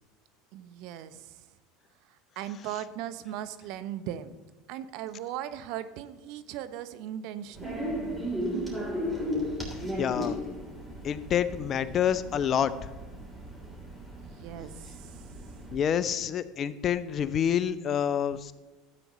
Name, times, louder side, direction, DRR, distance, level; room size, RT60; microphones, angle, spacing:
voice 1, 0.5-1.5 2.0-4.4 4.7-7.9 14.2-15.2, right 11 dB, 60° right, 12 dB, 0.6 m, -38 dB
sound 1, 7.5-15.8, equal, 10° right, 3.3 m, -35 dB
voice 2, 10.0-10.4 11.0-12.7 15.7-18.5, left 9 dB, 40° left, 15 dB, 0.6 m, -27 dB
13.0 x 8.6 x 3.1 m, 1.2 s
hypercardioid pair, 80°, 0 cm